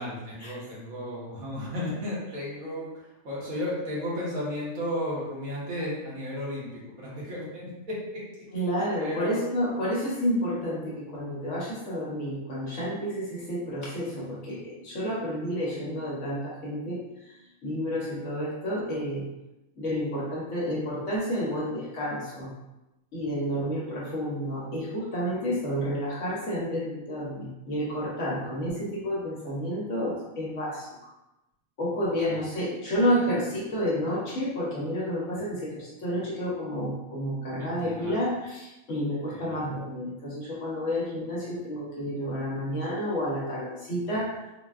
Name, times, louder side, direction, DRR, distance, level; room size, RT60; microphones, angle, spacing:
voice 1, 0.0-8.5 9.0-9.4 23.5-23.6 32.3-32.4 35.5-35.6 37.6-38.2 39.3-39.6, left 1 dB, 65° right, -7 dB, 1.4 m, -34 dB
voice 2, 8.5-17.0 17.6-19.3 19.8-22.5 23.1-30.9 31.8-44.4, equal, 60° left, -6 dB, 1.1 m, -30 dB
3.9 x 2.2 x 2.3 m, 0.98 s
omnidirectional pair, 1.6 m